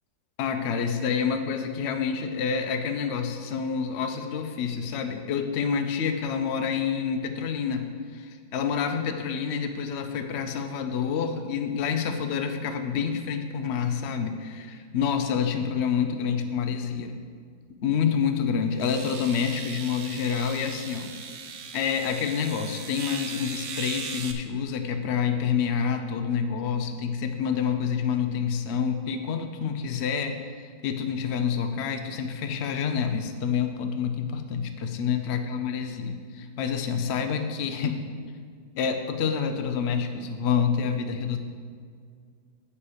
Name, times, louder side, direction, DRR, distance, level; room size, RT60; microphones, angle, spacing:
voice 1, 0.4-17.2 17.8-21.1 21.7-38.0 38.7-41.4, left 7 dB, 75° left, 6 dB, 0.6 m, -28 dB
sound 1, 17.9-18.0 18.8-24.3, right 6 dB, 60° right, 1.1 m, -38 dB
8.4 x 5.8 x 6.4 m, 2.1 s
omnidirectional pair, 2.0 m